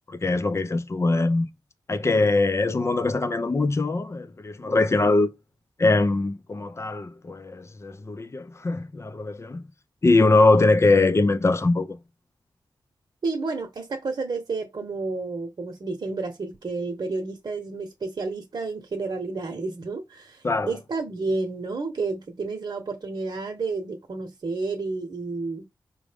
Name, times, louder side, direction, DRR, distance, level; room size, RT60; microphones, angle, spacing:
voice 1, 0.1-1.5 1.9-5.3 5.8-9.6 10.0-12.0 20.4-20.7, left 2 dB, 35° left, 0.5 m, -22 dB
voice 2, 13.2-25.7, right 3 dB, 55° right, 1.0 m, -31 dB
5.0 x 2.2 x 3.4 m
cardioid pair, 75°, 9 cm